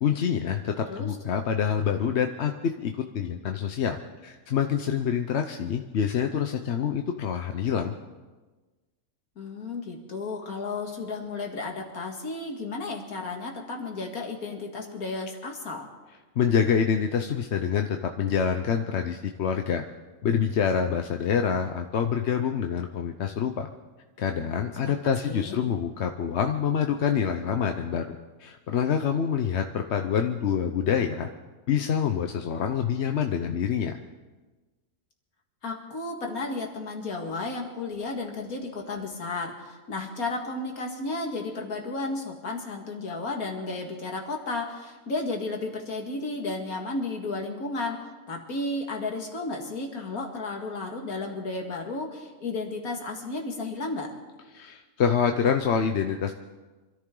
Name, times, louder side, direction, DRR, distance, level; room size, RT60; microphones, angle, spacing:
voice 1, 0.0-8.0 16.4-19.8 20.2-23.7 24.2-31.3 31.7-33.9 54.5-56.3, left 7 dB, 55° left, 5 dB, 0.9 m, -26 dB
voice 2, 0.8-1.2 9.4-15.9 24.9-25.0 25.2-25.6 35.6-48.0 48.3-54.1, left 3 dB, 90° left, 1 dB, 2.5 m, -33 dB
25.5 x 13.5 x 3.8 m, 1.2 s
omnidirectional pair, 1.5 m